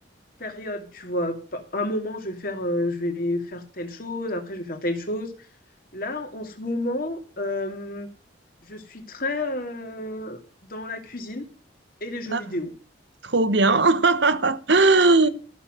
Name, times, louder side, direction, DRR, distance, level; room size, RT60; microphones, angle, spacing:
voice 1, 0.4-5.3 5.9-8.1 8.6-10.4 10.7-11.5 12.0-12.7, left 1 dB, 45° left, 2.5 m, -30 dB
voice 2, 13.2-15.3, right 3 dB, 65° right, 1.1 m, -18 dB
14.0 x 7.1 x 7.7 m
head